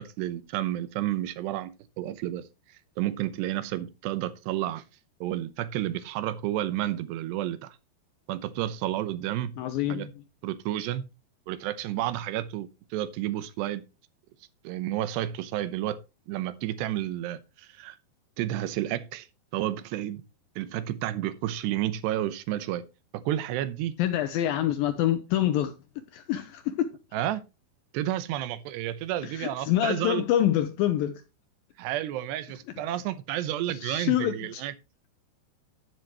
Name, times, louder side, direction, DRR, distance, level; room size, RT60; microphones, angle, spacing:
voice 1, 0.0-2.4 3.0-4.8 5.2-7.8 8.3-9.6 9.9-10.1 10.4-11.0 11.5-13.8 14.6-16.0 16.3-18.0 18.4-19.3 19.5-20.2 20.6-22.8 23.1-23.9 27.1-27.4 27.9-30.2 31.8-34.7, right 13 dB, 90° right, 3.0 m, -31 dB
voice 2, 9.6-10.1 24.0-27.0 29.2-31.2 33.7-34.6, left 12 dB, 80° left, 2.1 m, -26 dB
10.5 x 10.5 x 3.1 m
omnidirectional pair, 4.8 m